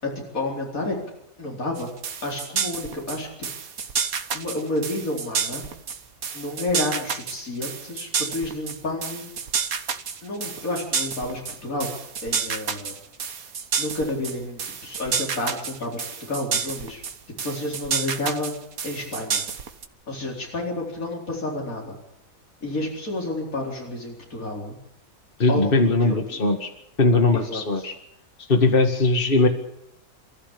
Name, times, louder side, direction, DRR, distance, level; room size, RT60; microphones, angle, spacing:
voice 1, 0.0-1.0 1.4-1.9 2.2-3.5 4.3-5.6 6.3-9.3 10.2-11.9 12.2-13.0 13.8-17.0 17.4-18.5 18.8-19.4 20.1-22.0 22.6-24.8 25.5-26.4 27.3-27.9, left 2 dB, 75° left, -2 dB, 4.8 m, -30 dB
sound 1, 1.8-19.9, right 6 dB, 80° right, 1.8 m, -29 dB
voice 2, 25.4-26.7 27.0-27.9 28.5-29.5, left 3 dB, 40° left, 4 dB, 2.2 m, -19 dB
28.0 x 14.5 x 8.6 m, 0.80 s
omnidirectional pair, 1.5 m